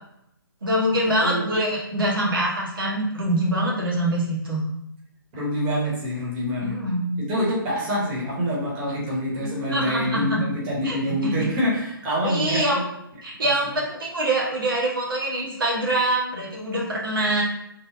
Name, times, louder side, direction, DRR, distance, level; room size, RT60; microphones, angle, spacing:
voice 1, 0.6-4.6 6.6-7.1 9.4-10.4 10.8-11.5 12.2-12.8 13.2-17.4, right 1 dB, 70° right, -3 dB, 1.3 m, -24 dB
voice 2, 5.3-6.7 7.2-12.8 13.4-13.7, equal, 30° right, -5 dB, 1.2 m, -26 dB
3.3 x 2.2 x 3.6 m, 0.79 s
figure-of-eight pair, 145°, 12 cm